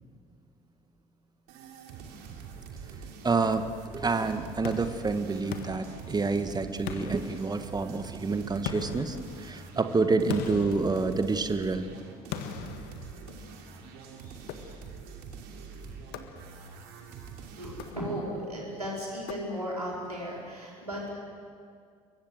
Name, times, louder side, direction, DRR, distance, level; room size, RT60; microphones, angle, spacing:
sound 1, 1.5-18.0, right 5 dB, 55° right, 3.2 m, -45 dB
voice 1, 3.2-11.9, right 3 dB, 20° right, 9 dB, 1.7 m, -28 dB
sound 2, 4.6-6.5 6.9-8.0 8.7-11.7 12.3-13.7 14.5-15.1 16.1-16.8 17.7-18.5 19.3-19.9, left 8 dB, 55° left, 1.6 m, -41 dB
voice 2, 14.2-14.7 17.6-21.1, equal, 85° right, -3 dB, 4.7 m, -36 dB
26.5 x 23.0 x 7.8 m, 2.1 s
figure-of-eight pair, 55°, 19 cm